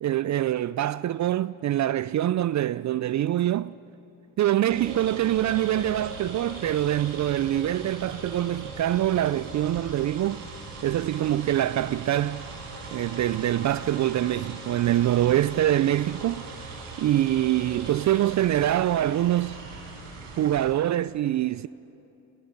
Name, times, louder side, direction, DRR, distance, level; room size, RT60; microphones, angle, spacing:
voice 1, 0.0-3.7 4.4-10.4 10.8-12.5 12.9-16.5 17.0-19.6 20.4-21.7, right 13 dB, 45° right, 0.5 m, -24 dB
sound 1, 4.7-20.6, right 3 dB, 85° right, 4.8 m, -40 dB
29.5 x 25.0 x 5.3 m
supercardioid pair, 60°, 41 cm